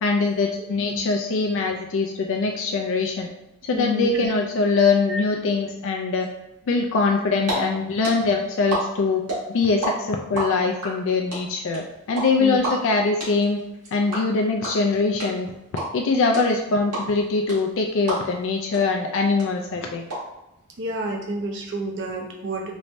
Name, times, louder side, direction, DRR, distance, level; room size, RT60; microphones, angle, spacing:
voice 1, 0.0-3.3 3.6-6.3 6.7-9.2 9.5-13.6 13.9-15.5 15.9-20.1, left 4 dB, 55° left, 2 dB, 0.4 m, -22 dB
voice 2, 0.6-1.1 3.7-4.3 12.4-12.6 20.8-22.8, right 1 dB, 55° right, 1 dB, 0.6 m, -30 dB
sound 1, 7.1-7.5 7.8-9.9 10.2-18.5 18.7-18.8 19.1-20.1, right 2 dB, 80° right, 1.4 m, -30 dB
3.1 x 2.6 x 3.2 m, 0.89 s
head